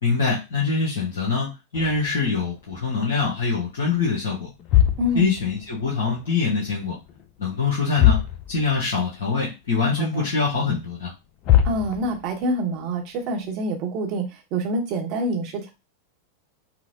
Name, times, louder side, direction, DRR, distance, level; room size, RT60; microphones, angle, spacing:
voice 1, 0.0-4.5 5.2-6.9 7.4-8.2 8.5-11.1, left 4 dB, 65° left, -5 dB, 1.0 m, -24 dB
sound 1, 1.7-3.4 3.7-4.0 4.5-6.3 6.6-7.3 7.5-7.6 7.9-8.9 9.3-9.4 10.0-10.1 11.1-11.2 11.4-12.4, left 11 dB, 40° left, 0.5 m, -23 dB
voice 2, 5.0-5.3 10.0-10.2 11.6-15.7, right 1 dB, 40° right, 3 dB, 0.9 m, -26 dB
4.4 x 2.1 x 2.6 m, 0.26 s
figure-of-eight pair, 90°, 0 cm